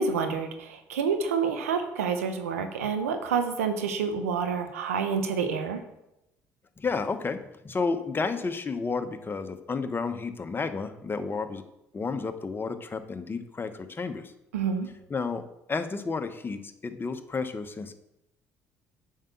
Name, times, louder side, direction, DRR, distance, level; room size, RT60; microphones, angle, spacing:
voice 1, 0.0-5.8 14.5-14.9, right 5 dB, 90° right, 7 dB, 1.0 m, -28 dB
voice 2, 6.8-11.6 11.9-14.3 15.1-15.4 15.7-17.9, left 4 dB, 30° left, 9 dB, 1.0 m, -31 dB
7.3 x 5.7 x 7.0 m, 0.87 s
hypercardioid pair, 60°, 8 cm